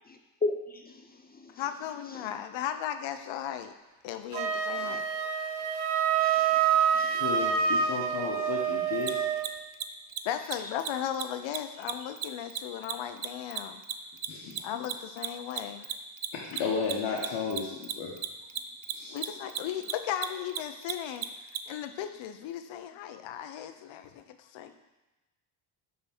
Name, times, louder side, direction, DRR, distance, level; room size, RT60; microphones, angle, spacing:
voice 1, 0.4-1.6 2.1-2.3 4.8-5.0 6.1-7.8 19.4-19.5, left 2 dB, 20° left, 5 dB, 0.4 m, -37 dB
voice 2, 1.6-3.7 4.0-5.0 10.2-13.8 14.6-15.9 19.1-21.3 21.7-24.7, left 10 dB, 65° left, 9 dB, 0.7 m, -36 dB
Wind instrument woodwind instrument, 4.3-9.5, right 7 dB, 90° right, 0.8 m, -27 dB
voice 3, 7.1-9.2 14.3-14.5 16.3-18.1 18.9-19.2, left 5 dB, 80° left, -2 dB, 1.2 m, -33 dB
Mechanisms, 9.0-9.1 9.4-9.5 9.7-9.8 10.1-10.2 10.4-10.5 10.8-10.9 11.1-11.2 11.5-14.3 14.5-21.6, right 12 dB, 50° right, 0.5 m, -33 dB
5.6 x 3.9 x 6.0 m, 1.1 s
cardioid pair, 105°, 49 cm